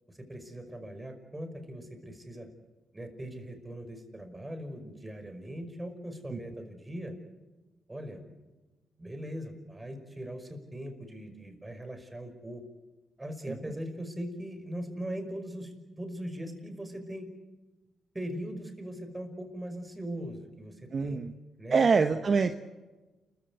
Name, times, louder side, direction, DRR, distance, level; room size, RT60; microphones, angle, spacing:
voice 1, 0.1-2.5 2.9-7.1 7.9-8.2 9.0-12.6 13.2-17.3 18.1-21.2 21.6-21.9, equal, 20° right, 6 dB, 5.5 m, -40 dB
voice 2, 20.9-21.3 21.7-22.5, right 5 dB, 50° right, 8 dB, 1.1 m, -25 dB
29.5 x 15.0 x 8.3 m, 1.2 s
supercardioid pair, 50°, 0 cm